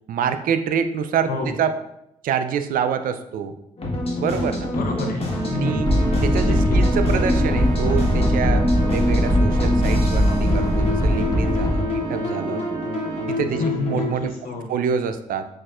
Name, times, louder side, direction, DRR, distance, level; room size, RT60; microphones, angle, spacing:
voice 1, 0.1-1.8 2.2-3.5 4.2-4.7 5.5-5.9 6.2-12.7 13.3-14.4 14.7-15.5, right 7 dB, 70° right, 10 dB, 0.4 m, -26 dB
sound 1, 3.8-14.1, left 1 dB, 40° left, 1.3 m, -26 dB
voice 2, 4.7-5.9 6.5-6.8 13.6-14.7, left 2 dB, 75° left, 2 dB, 0.7 m, -28 dB
Trumpet, 5.3-13.4, right 4 dB, 25° right, 1.3 m, -33 dB
sound 2, 5.8-11.8, equal, 25° left, 0.9 m, -20 dB
6.3 x 2.4 x 2.4 m, 0.80 s
supercardioid pair, 50°, 15 cm